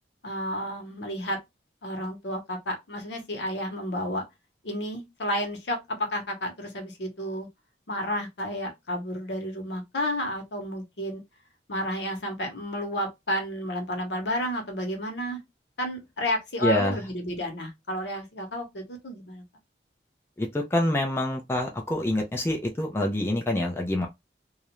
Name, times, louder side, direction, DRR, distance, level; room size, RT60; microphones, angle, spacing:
voice 1, 0.2-1.4 1.8-4.2 4.6-7.5 7.9-11.2 11.7-15.4 15.8-19.4, equal, 75° left, 0.8 m, -31 dB
voice 2, 16.6-17.0 20.4-24.1, left 1 dB, 15° left, 0.4 m, -26 dB
2.4 x 2.0 x 2.9 m
head